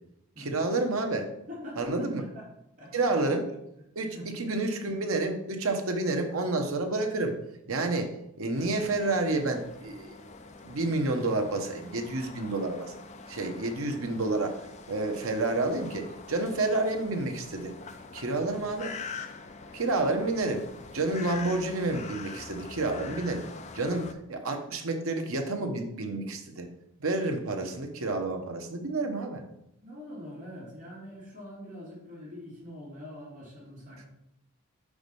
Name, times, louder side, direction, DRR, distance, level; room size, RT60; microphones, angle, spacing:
voice 1, 0.4-1.3 1.8-2.2 2.9-3.4 3.9-7.3 7.7-8.1 8.4-10.2 10.6-12.9 13.3-14.6 14.9-17.7 18.1-18.9 19.7-20.6 20.9-23.4 23.7-26.7 27.0-29.4, right 2 dB, 80° right, 5 dB, 1.0 m, -29 dB
voice 2, 1.5-2.5 2.8-3.3 4.0-4.4 29.8-34.1, left 1 dB, 40° right, -5 dB, 2.6 m, -44 dB
sound 1, 8.5-24.1, left 4 dB, 30° left, 0.4 m, -45 dB
5.2 x 4.8 x 5.4 m, 0.83 s
head